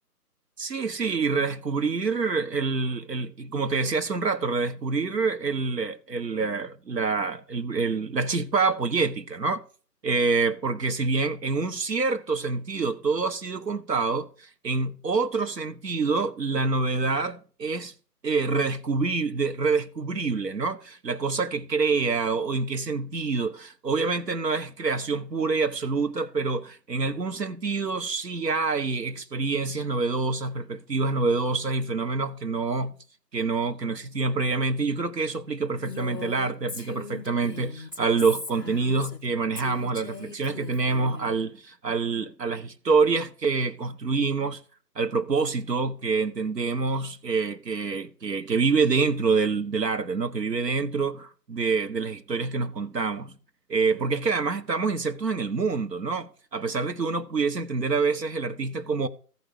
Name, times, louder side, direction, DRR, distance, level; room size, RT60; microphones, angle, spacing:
voice 1, 0.6-9.6 10.0-17.9 18.2-32.9 33.3-44.6 44.9-53.4 53.7-59.1, right 4 dB, 85° right, 1.5 m, -26 dB
Female speech woman speaking, 35.8-39.3 39.6-41.3, left 3 dB, 15° right, 0.6 m, -39 dB
14.0 x 5.2 x 6.7 m
hypercardioid pair, 155°, 48 cm